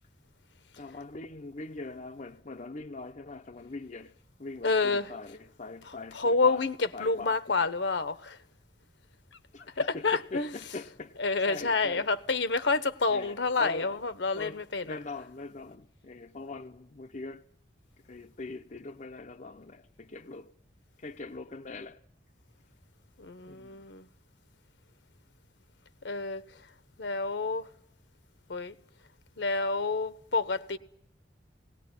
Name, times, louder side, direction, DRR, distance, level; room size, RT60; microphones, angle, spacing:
voice 1, 0.8-4.1 4.4-6.7 6.9-7.4 9.5-11.2 11.4-12.1 13.1-14.0 14.3-17.4 18.1-20.5 21.0-22.0 23.4-23.8, left 3 dB, 40° left, 0.8 m, -42 dB
voice 2, 4.6-5.1 6.1-8.4 9.8-10.5 11.2-15.0 23.2-24.1 26.0-26.4 27.0-27.7 28.5-28.7 29.4-30.8, left 3 dB, 70° left, 1.1 m, -28 dB
19.5 x 18.5 x 9.8 m
head